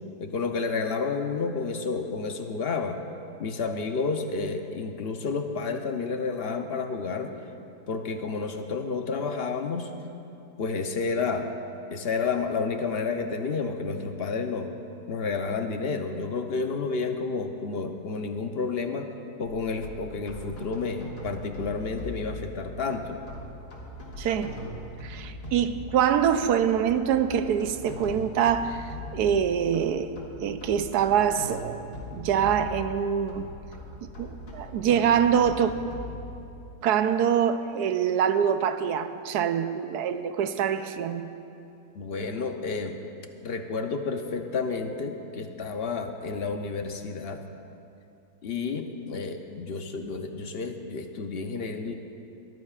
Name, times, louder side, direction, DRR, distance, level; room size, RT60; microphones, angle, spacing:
voice 1, 0.2-3.0 3.4-7.3 7.9-9.9 10.6-11.5 11.9-14.7 15.1-19.1 19.4-23.2 41.9-43.0 43.4-47.4 48.4-51.9, left 4 dB, 50° left, 0.7 m, -30 dB
sound 1, 19.4-36.7, left 1 dB, 75° left, 2.6 m, -41 dB
voice 2, 24.2-24.5 25.0-31.8 32.1-33.5 34.2-35.7 36.8-41.3, right 8 dB, 80° right, 1.2 m, -25 dB
22.0 x 14.5 x 2.4 m
omnidirectional pair, 1.7 m